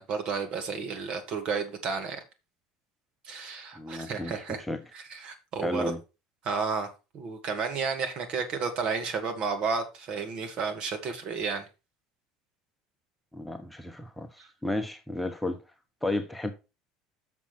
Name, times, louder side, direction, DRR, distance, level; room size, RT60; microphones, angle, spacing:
voice 1, 0.0-2.2 3.2-4.6 4.9-5.9 6.4-6.9 7.1-11.7 14.4-14.5, right 5 dB, 50° right, 2.0 m, -32 dB
voice 2, 3.8-4.8 5.6-6.0 13.3-14.3 14.6-15.6 16.0-16.5, left 1 dB, 5° left, 1.1 m, -32 dB
7.0 x 6.2 x 4.4 m
hypercardioid pair, 70°, 2 cm